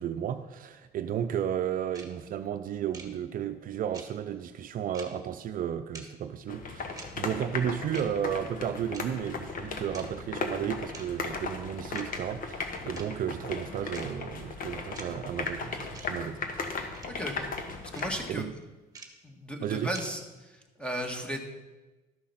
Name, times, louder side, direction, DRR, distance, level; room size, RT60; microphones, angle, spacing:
voice 1, 0.0-16.4 18.3-18.5 19.6-19.9, right 9 dB, 55° right, 9 dB, 0.6 m, -33 dB
sound 1, 1.9-2.1 2.9-3.1 3.9-4.1 4.9-5.1 5.9-6.1 6.9-7.1 7.9-8.1 8.9-9.0 9.9-10.1 10.9-11.1 11.9-12.1 12.9-13.1 13.9-14.1 14.9-15.1 15.9-16.1 16.9-17.1 17.9-18.1 18.9-19.1 19.9-20.1, right 4 dB, 20° right, 1.7 m, -45 dB
sound 2, 6.5-18.3, left 4 dB, 55° left, 1.4 m, -37 dB
voice 2, 17.1-17.5 17.9-18.6 19.2-21.5, equal, 5° left, 3 dB, 1.7 m, -36 dB
12.5 x 6.3 x 5.8 m, 1.1 s
cardioid pair, 110°, 17 cm